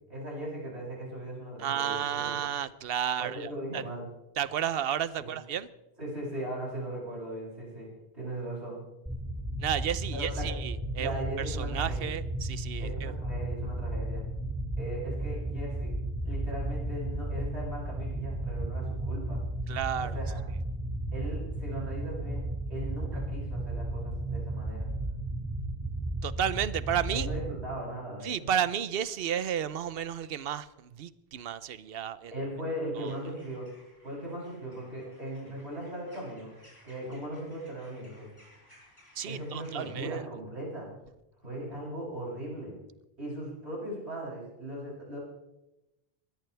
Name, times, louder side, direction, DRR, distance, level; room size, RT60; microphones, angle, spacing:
voice 1, 0.1-2.4 3.2-4.1 5.2-5.4 6.0-7.9 8.1-8.8 10.1-10.5 11.0-12.1 12.8-14.2 14.8-15.9 16.2-19.4 20.0-20.5 21.1-24.9 27.1-28.5 32.3-33.7 34.0-36.5 36.8-38.3 39.2-40.9 41.4-42.7 43.2-45.2, right 1 dB, 85° right, -5 dB, 8.5 m, -38 dB
voice 2, 1.6-3.8 4.4-5.7 9.6-13.1 19.7-20.2 26.2-27.3 28.2-32.3 33.0-33.1 39.2-40.2, right 9 dB, 65° right, 16 dB, 0.9 m, -32 dB
sound 1, 9.1-27.5, right 1 dB, 5° right, 1.5 m, -34 dB
sound 2, 33.0-39.9, equal, 30° left, 6.9 m, -59 dB
22.5 x 16.5 x 3.4 m, 0.93 s
omnidirectional pair, 1.1 m